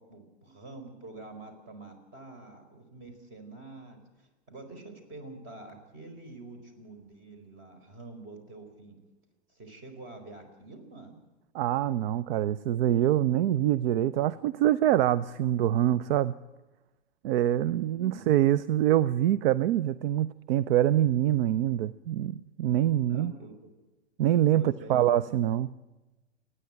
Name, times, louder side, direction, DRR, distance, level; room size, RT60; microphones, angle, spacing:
voice 1, 0.0-9.0 9.5-11.2 17.8-18.4 23.0-23.7 24.5-25.1, right 2 dB, 35° right, 7 dB, 4.6 m, -47 dB
voice 2, 11.5-16.3 17.2-23.3 24.2-25.7, right 12 dB, 55° right, 18 dB, 0.6 m, -25 dB
29.0 x 10.0 x 9.0 m, 1.1 s
hypercardioid pair, 115°, 34 cm